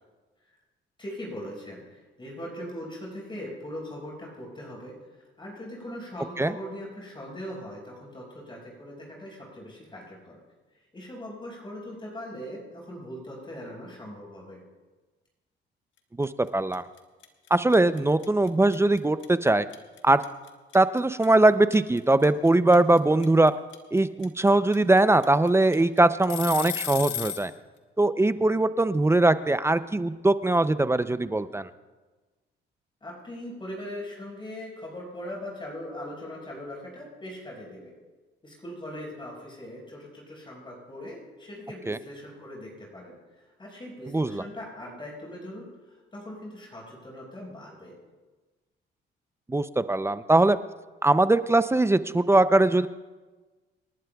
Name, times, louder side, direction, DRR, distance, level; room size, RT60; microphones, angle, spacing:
voice 1, 1.0-5.0 5.4-10.4 10.9-14.6 28.4-28.6 33.0-37.9 38.4-47.9, left 1 dB, 25° left, -3 dB, 5.3 m, -40 dB
sound 1, 16.2-16.5 16.7-27.5, left 11 dB, 75° left, 1.3 m, -35 dB
voice 2, 16.2-16.8 17.5-19.7 20.0-20.2 20.7-23.5 23.9-27.5 28.0-31.7 41.9-42.0 44.1-44.4 49.5-50.6 51.0-52.9, right 2 dB, 15° right, 13 dB, 0.5 m, -21 dB
27.5 x 11.5 x 2.3 m, 1.2 s
cardioid pair, 90°, 20 cm